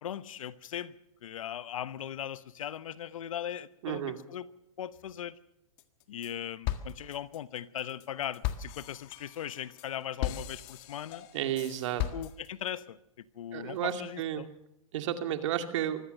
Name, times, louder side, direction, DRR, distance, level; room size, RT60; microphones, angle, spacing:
voice 1, 0.0-1.0 1.2-4.5 4.8-5.4 6.1-11.3 12.1-14.5, left 10 dB, 65° left, 16 dB, 1.0 m, -39 dB
voice 2, 3.8-4.1 11.3-12.0 13.5-14.4 14.9-16.0, right 10 dB, 55° right, 7 dB, 2.4 m, -32 dB
sound 1, 5.8-6.3 6.6-12.7, left 12 dB, 40° left, 1.7 m, -37 dB
24.0 x 17.0 x 6.6 m, 0.83 s
hypercardioid pair, 120°, 18 cm